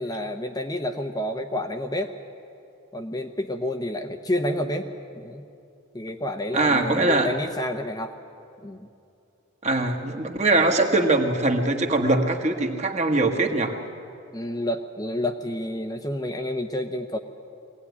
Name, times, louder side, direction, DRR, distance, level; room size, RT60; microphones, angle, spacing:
voice 1, 0.0-2.1 2.9-4.9 5.1-5.4 5.9-8.1 8.6-8.9 14.3-17.2, left 1 dB, 20° left, 4 dB, 0.8 m, -29 dB
voice 2, 6.5-7.3 9.6-13.8, right 2 dB, 30° right, 4 dB, 1.6 m, -22 dB
22.5 x 17.5 x 9.5 m, 2.6 s
head